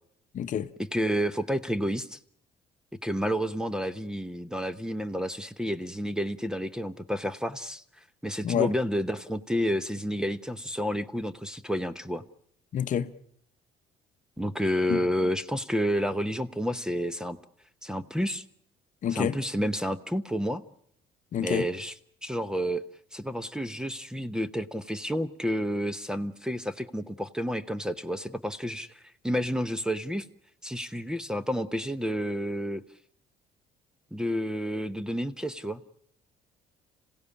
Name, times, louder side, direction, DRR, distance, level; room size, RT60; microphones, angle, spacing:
voice 1, 0.3-0.7 8.4-8.7 12.7-13.1 14.9-15.0 19.0-19.4 21.3-21.7, left 9 dB, 50° left, 0.9 m, -27 dB
voice 2, 0.9-2.2 3.0-7.8 8.2-12.2 14.4-17.4 17.8-18.4 19.1-20.6 21.4-21.9 22.2-22.8 23.1-28.9 29.2-30.2 30.6-32.8 34.1-35.8, equal, 5° right, 0.9 m, -30 dB
27.0 x 16.5 x 8.6 m
cardioid pair, 110°, 17 cm